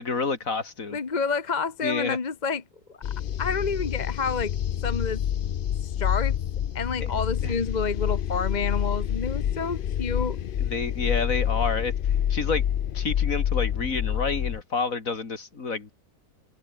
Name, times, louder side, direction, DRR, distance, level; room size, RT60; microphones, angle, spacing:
voice 1, 0.0-1.0 1.8-2.2 7.0-7.1 7.4-7.5 10.6-11.9 12.3-12.6 12.9-15.9, left 4 dB, 60° left, 2.9 m, -29 dB
voice 2, 0.9-2.6 2.9-3.0 3.4-4.5 4.8-5.2 5.8-6.3 6.7-10.4, left 5 dB, 30° left, 1.2 m, -29 dB
sound 1, 3.0-14.6, left 10 dB, 85° left, 0.4 m, -27 dB
omnidirectional pair, 1.7 m